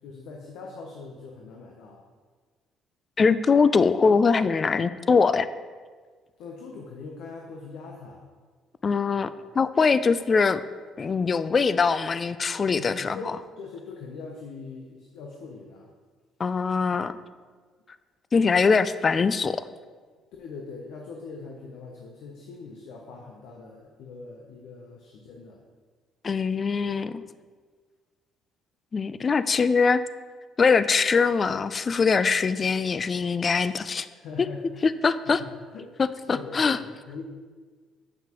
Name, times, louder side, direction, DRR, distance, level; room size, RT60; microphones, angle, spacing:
voice 1, 0.0-2.0 6.4-8.2 9.1-9.3 12.8-15.9 20.4-25.6 34.2-34.9 35.2-35.9 36.3-37.2, left 4 dB, 80° left, 0 dB, 0.8 m, -42 dB
voice 2, 3.2-5.5 8.8-10.6 11.0-13.2 16.4-17.2 18.3-19.6 26.2-27.2 28.9-30.0 30.6-34.1 34.8-35.4 36.0-36.8, left 5 dB, 35° left, 14 dB, 0.3 m, -22 dB
7.8 x 5.8 x 3.0 m, 1.5 s
supercardioid pair, 80°, 0 cm